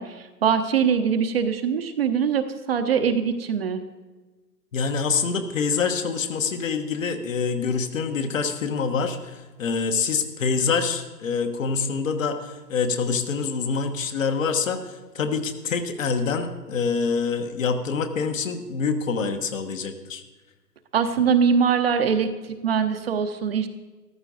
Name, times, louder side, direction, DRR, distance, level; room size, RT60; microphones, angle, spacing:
voice 1, 0.0-3.8 20.9-23.7, right 6 dB, 35° right, 8 dB, 0.8 m, -22 dB
voice 2, 4.7-20.2, left 5 dB, 50° left, 7 dB, 1.4 m, -26 dB
13.5 x 12.5 x 4.0 m, 1.2 s
figure-of-eight pair, 135°, 50 cm